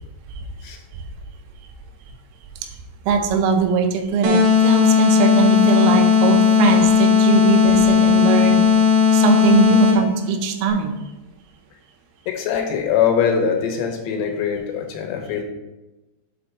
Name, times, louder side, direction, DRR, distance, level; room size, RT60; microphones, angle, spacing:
voice 1, 3.1-8.7 9.1-11.0, right 5 dB, 85° right, 6 dB, 3.3 m, -20 dB
sound 1, 4.2-10.2, left 6 dB, 65° right, 3.4 m, -15 dB
voice 2, 12.3-15.4, left 7 dB, 85° left, 3 dB, 3.4 m, -22 dB
7.7 x 4.2 x 4.6 m, 1.0 s
omnidirectional pair, 5.7 m